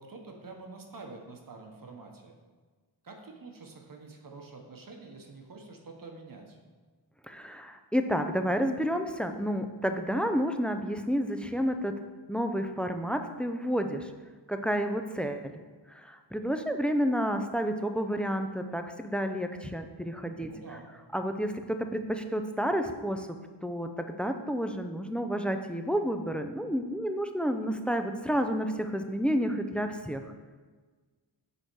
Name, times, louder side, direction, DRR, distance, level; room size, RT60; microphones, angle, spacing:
voice 1, 0.0-2.4 3.0-6.6 20.4-20.9, right 3 dB, 50° right, 3 dB, 0.9 m, -47 dB
voice 2, 7.3-11.9 12.3-14.1 14.5-15.6 15.9-20.5 21.1-23.3 23.6-30.2, equal, 5° left, 7 dB, 0.3 m, -30 dB
6.7 x 4.3 x 4.6 m, 1.4 s
wide cardioid pair, 110°, 44 cm